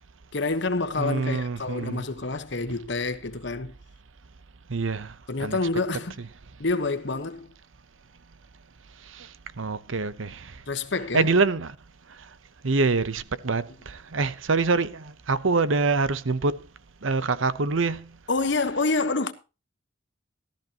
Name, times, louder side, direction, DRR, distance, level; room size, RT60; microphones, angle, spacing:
voice 1, 0.3-3.7 5.3-6.2 6.6-7.5 10.7-11.3 18.3-19.3, left 3 dB, 60° left, 1.2 m, -27 dB
voice 2, 1.0-2.0 4.7-5.6 9.1-9.3 9.6-10.6 11.1-11.8 12.6-16.6 17.0-18.1, right 4 dB, 80° right, 0.9 m, -25 dB
15.0 x 13.0 x 3.0 m
head